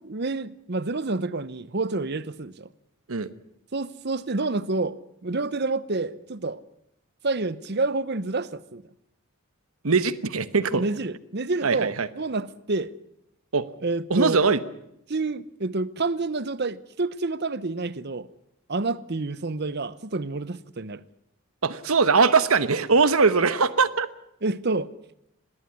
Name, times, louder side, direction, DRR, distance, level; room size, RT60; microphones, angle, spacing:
voice 1, 0.0-2.7 3.7-6.6 7.2-8.8 10.7-12.9 13.8-14.4 15.1-18.3 18.7-21.0 24.4-24.9, right 3 dB, 50° right, 0.8 m, -28 dB
voice 2, 9.8-10.8 11.6-12.1 13.5-13.6 14.1-14.6 21.6-24.1, right 4 dB, 70° right, 1.1 m, -21 dB
20.0 x 17.5 x 9.7 m
head